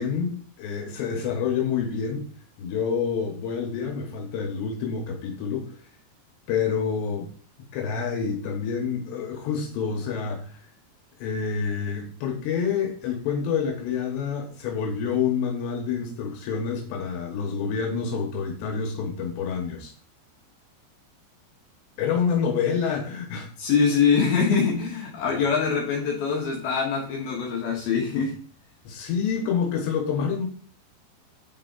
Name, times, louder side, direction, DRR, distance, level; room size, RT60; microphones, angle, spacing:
voice 1, 0.0-2.2 2.6-5.7 6.5-7.3 7.7-10.6 11.2-19.9 22.0-23.5 28.9-30.5, left 6 dB, 85° left, 2 dB, 3.4 m, -27 dB
voice 2, 23.6-28.4, left 6 dB, 65° left, -2 dB, 3.0 m, -23 dB
9.7 x 4.6 x 4.0 m, 0.43 s
omnidirectional pair, 5.0 m